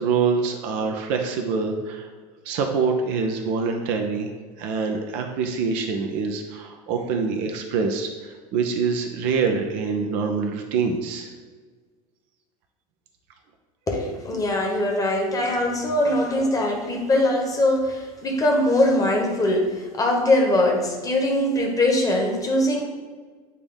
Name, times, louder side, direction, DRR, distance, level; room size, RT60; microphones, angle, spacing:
voice 1, 0.0-2.1 2.4-4.3 4.6-11.3, right 5 dB, 50° right, 4 dB, 0.7 m, -25 dB
voice 2, 13.9-22.8, left 1 dB, 20° left, 0 dB, 1.2 m, -22 dB
8.2 x 2.9 x 3.9 m, 1.4 s
figure-of-eight pair, 75°, 19 cm